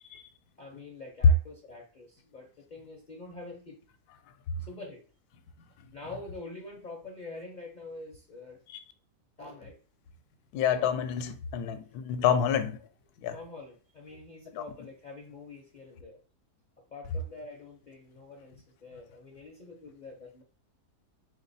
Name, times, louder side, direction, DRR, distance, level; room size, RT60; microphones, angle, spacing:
voice 1, 0.6-3.8 4.6-5.0 5.9-8.6 9.4-9.8 13.3-16.2 16.9-18.6 18.8-20.4, left 2 dB, 50° left, 0.5 m, -45 dB
voice 2, 10.5-12.9 13.2-13.4 14.5-14.7, left 8 dB, 85° left, 1.1 m, -29 dB
3.7 x 2.9 x 4.0 m
omnidirectional pair, 1.6 m